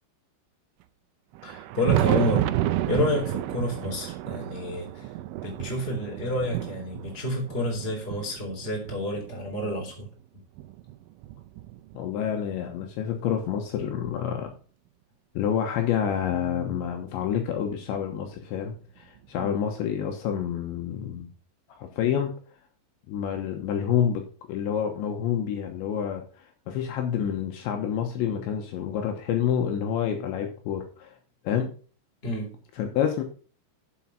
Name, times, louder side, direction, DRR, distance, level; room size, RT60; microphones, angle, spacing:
Thunder, 1.3-9.9 10.6-12.3 13.4-13.5 14.1-14.2 16.0-16.1 17.5-17.6 19.2-19.3, right 15 dB, 80° right, 3.0 m, -31 dB
voice 1, 1.4-5.1 5.4-10.1 19.3-19.5 32.2-32.5, left 1 dB, 15° left, 0 dB, 2.8 m, -29 dB
voice 2, 11.9-14.5 15.3-21.3 21.8-22.3 23.1-24.2 24.5-26.2 26.7-31.2 31.4-31.7 32.8-33.2, left 8 dB, 75° left, 3 dB, 3.1 m, -28 dB
9.2 x 7.2 x 5.8 m, 0.40 s
omnidirectional pair, 5.8 m